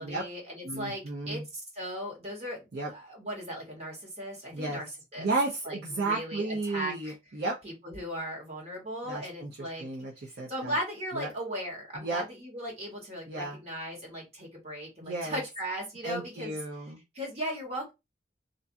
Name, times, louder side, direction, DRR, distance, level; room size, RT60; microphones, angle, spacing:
voice 1, 0.0-1.4 1.7-5.3 5.6-7.1 7.6-9.9 10.5-16.6 17.1-17.9, equal, 35° right, -2 dB, 1.4 m, -37 dB
voice 2, 0.6-1.4 2.7-2.9 4.5-4.8 5.2-7.6 9.1-10.8 11.1-11.3 11.9-12.2 13.3-13.6 15.0-15.4 16.0-17.0, right 3 dB, 65° right, -2 dB, 0.6 m, -33 dB
2.6 x 2.3 x 2.6 m, 0.23 s
head